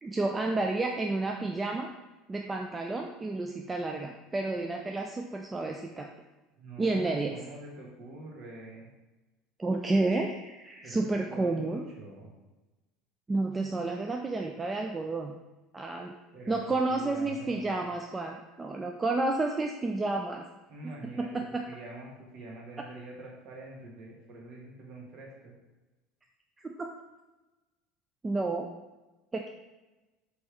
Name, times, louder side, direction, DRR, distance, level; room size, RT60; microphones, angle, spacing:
voice 1, 0.0-1.9 2.3-6.1 6.8-7.4 9.6-11.8 13.3-15.3 15.7-16.1 16.5-20.4 21.2-21.3 21.5-21.6 26.6-26.9 28.2-28.7 29.3-29.5, right 2 dB, 20° right, 2 dB, 0.4 m, -30 dB
voice 2, 6.5-8.9 10.8-12.3 16.3-16.6 16.9-17.7 20.7-25.5, right 2 dB, 45° right, -2 dB, 1.3 m, -45 dB
4.3 x 3.2 x 3.2 m, 1.1 s
figure-of-eight pair, 70°, 0 cm